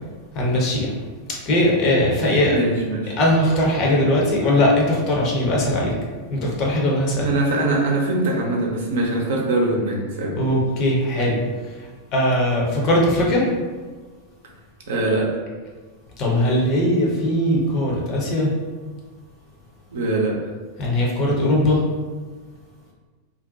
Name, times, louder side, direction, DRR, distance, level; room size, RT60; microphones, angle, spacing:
voice 1, 0.3-0.9 1.5-2.6 3.2-5.9 6.3-7.3 10.4-11.4 12.1-13.4 16.2-18.5 20.8-21.8, left 1 dB, 35° left, -3 dB, 0.7 m, -19 dB
voice 2, 2.5-3.1 7.2-10.4 14.9-15.3 19.9-20.3, right 2 dB, 60° right, -2 dB, 0.5 m, -22 dB
2.5 x 2.1 x 2.6 m, 1.4 s
figure-of-eight pair, 90°, 0 cm